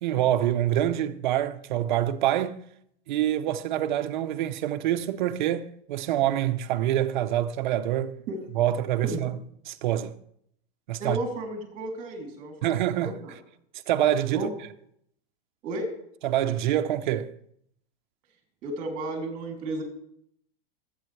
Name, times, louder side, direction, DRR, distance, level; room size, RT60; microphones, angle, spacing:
voice 1, 0.0-2.6 3.1-8.2 8.5-9.4 9.7-10.2 10.9-11.2 12.6-13.2 13.9-14.5 16.2-17.3, right 12 dB, 50° right, 0.8 m, -26 dB
voice 2, 11.0-13.4 14.3-14.5 15.6-15.9 18.6-19.8, right 2 dB, 25° right, 2.9 m, -33 dB
23.5 x 8.8 x 3.3 m
supercardioid pair, 180°, 30 cm